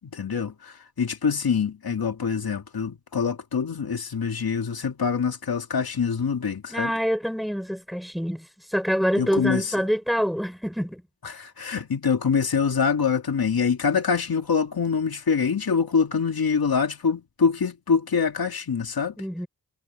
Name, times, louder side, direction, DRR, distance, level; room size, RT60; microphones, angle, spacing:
voice 1, 0.1-6.9 9.2-9.6 11.2-19.1, left 6 dB, 65° left, 2.3 m, -25 dB
voice 2, 6.7-11.0 19.2-19.5, equal, ahead, 6.5 m, -26 dB
cardioid pair, 60°, 39 cm